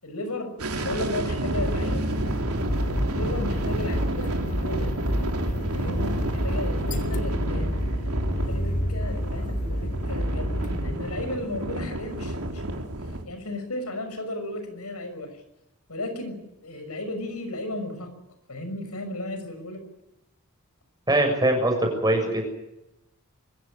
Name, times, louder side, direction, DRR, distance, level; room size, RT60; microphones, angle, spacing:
voice 1, 0.0-2.3 3.1-5.0 5.7-7.7 8.5-12.8 13.3-15.3 15.9-18.1 18.5-19.8, left 1 dB, 90° left, 7 dB, 6.1 m, -34 dB
sound 1, 0.6-13.2, right 1 dB, 90° right, 3.6 m, -31 dB
sound 2, 1.5-10.9, equal, 35° left, 2.2 m, -28 dB
voice 2, 21.1-21.8 22.0-22.4, right 1 dB, 20° right, 3 dB, 6.9 m, -21 dB
24.5 x 15.5 x 9.9 m, 0.90 s
head